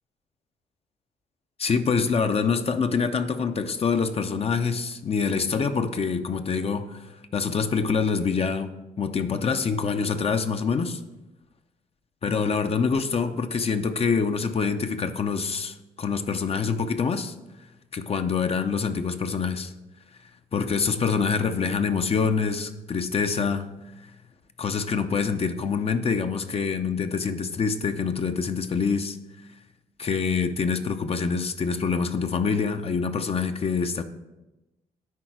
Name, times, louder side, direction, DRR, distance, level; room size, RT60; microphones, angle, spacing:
voice 1, 1.6-11.0 12.2-17.3 17.9-19.7 20.5-23.7 24.6-29.2 30.0-34.0, left 5 dB, 40° left, 8 dB, 0.6 m, -25 dB
10.5 x 3.9 x 4.6 m, 1.0 s
supercardioid pair, 60°, 16 cm